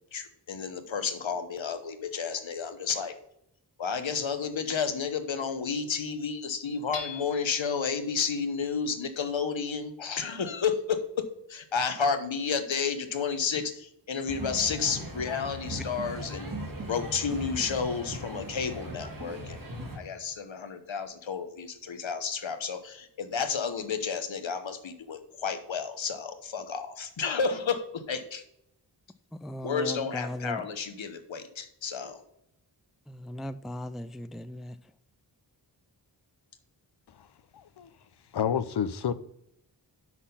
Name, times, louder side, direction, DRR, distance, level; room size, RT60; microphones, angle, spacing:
voice 1, 0.1-3.1 3.8-16.5 16.9-19.6 19.9-28.4 29.6-32.2, left 6 dB, 90° left, 1.1 m, -31 dB
Hammer / Chink clink, 6.9-7.7, left 5 dB, 15° left, 1.8 m, -40 dB
sound 1, 14.3-20.0, right 1 dB, 45° right, 2.0 m, -38 dB
voice 2, 29.4-30.6 33.1-34.7, left 1 dB, ahead, 0.3 m, -37 dB
voice 3, 37.5-37.9 38.3-39.1, left 8 dB, 60° left, 0.6 m, -29 dB
6.1 x 6.1 x 5.4 m
wide cardioid pair, 75°, 45 cm